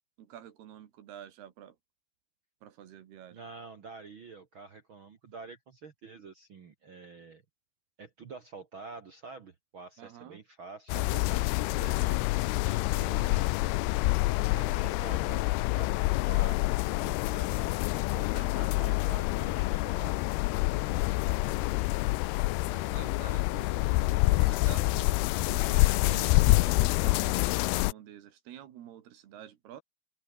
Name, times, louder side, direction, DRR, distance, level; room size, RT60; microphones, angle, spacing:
voice 1, 0.2-1.8 2.6-3.4 10.0-10.4 12.7-13.1 18.3-18.8 22.7-25.2 25.5-29.8, right 10 dB, 75° right, 3.8 m, -49 dB
voice 2, 3.3-7.4 8.0-12.2 12.9-13.5 14.4-16.0 16.3-20.2 20.8-21.8, right 4 dB, 55° right, 1.4 m, -48 dB
sound 1, 10.9-27.9, left 22 dB, 85° left, 2.6 m, -27 dB
open air
omnidirectional pair, 4.6 m